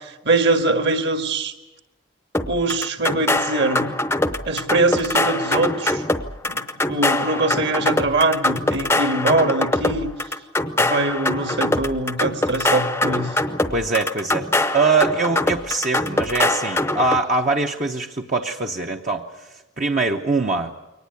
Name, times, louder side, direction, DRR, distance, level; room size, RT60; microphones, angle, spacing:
voice 1, 0.0-1.5 2.5-3.9 4.5-6.0 6.4-10.1 10.8-13.4, right 2 dB, 55° right, 7 dB, 1.8 m, -22 dB
sound 1, 2.3-17.2, left 2 dB, 10° left, 0.7 m, -23 dB
voice 2, 13.7-14.5 14.7-20.7, right 3 dB, 35° right, 2 dB, 0.8 m, -23 dB
23.0 x 19.0 x 8.3 m, 1.0 s
head